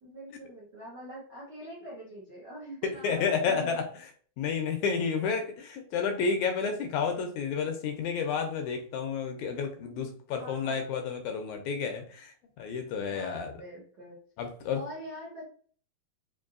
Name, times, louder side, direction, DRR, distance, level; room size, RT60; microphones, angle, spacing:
voice 1, 0.0-3.7 9.5-10.9 13.1-14.2 14.7-15.5, equal, 65° right, -5 dB, 1.0 m, -45 dB
voice 2, 2.8-3.9 4.4-13.5 14.4-14.8, left 5 dB, 80° left, 5 dB, 1.8 m, -31 dB
5.3 x 2.6 x 2.5 m, 0.44 s
omnidirectional pair, 3.6 m